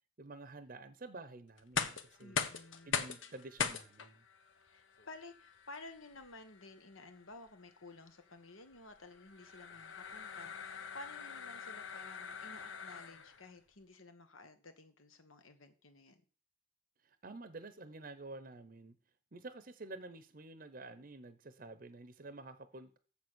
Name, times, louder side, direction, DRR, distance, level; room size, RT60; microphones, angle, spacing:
voice 1, 0.2-2.4 2.8-4.2 17.0-18.9 19.3-23.0, right 2 dB, 45° right, 0.7 m, -50 dB
sound 1, 1.6-13.5, left 6 dB, 75° left, 1.0 m, -42 dB
voice 2, 2.2-3.0 4.6-16.2, left 2 dB, 90° left, 1.4 m, -54 dB
7.2 x 7.2 x 6.3 m
head